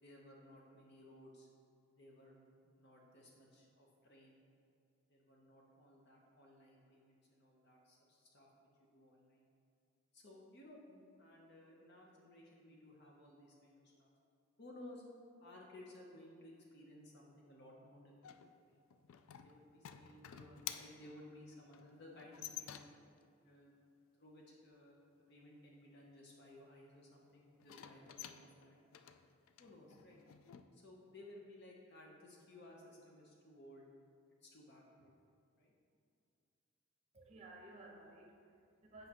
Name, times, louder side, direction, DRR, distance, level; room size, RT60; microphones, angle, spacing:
voice 1, 0.0-1.5 2.0-4.4 5.1-8.5 8.9-9.5 10.1-14.1 14.6-15.0 15.4-18.4 18.7-18.8 19.4-22.9 23.4-23.7 24.2-25.0 25.3-28.8 29.6-30.2 30.7-33.9 34.4-35.1 35.6-35.7, left 1 dB, 50° left, -2 dB, 0.7 m, -58 dB
sound 1, 18.2-23.2 27.6-30.6, left 10 dB, 75° left, 0.3 m, -51 dB
voice 2, 37.1-39.1, right 2 dB, 30° right, 0 dB, 0.8 m, -56 dB
8.0 x 5.1 x 2.9 m, 2.5 s
head